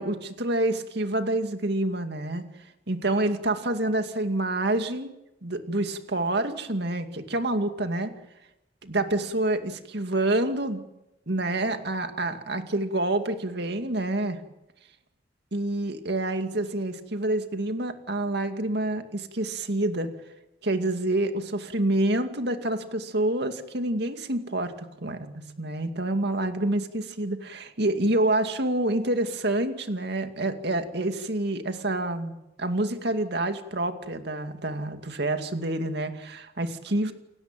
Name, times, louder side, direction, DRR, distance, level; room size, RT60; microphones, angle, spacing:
voice 1, 0.0-2.5 2.9-5.1 5.4-8.1 8.8-10.8 11.3-14.4 15.5-20.1 20.6-32.3 32.6-37.1, right 1 dB, 60° right, 7 dB, 2.4 m, -27 dB
29.5 x 16.0 x 9.2 m, 0.92 s
head